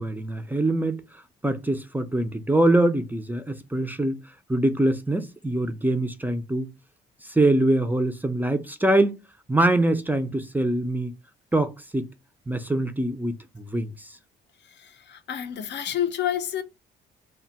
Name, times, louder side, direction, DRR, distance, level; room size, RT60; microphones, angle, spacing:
voice 1, 0.0-4.2 4.5-6.7 7.2-9.2 9.5-11.2 11.5-12.1 12.5-14.2, right 1 dB, 10° right, 0.4 m, -24 dB
voice 2, 14.6-16.6, left 10 dB, 60° left, 0.6 m, -29 dB
2.2 x 2.1 x 3.8 m
cardioid pair, 90°, 20 cm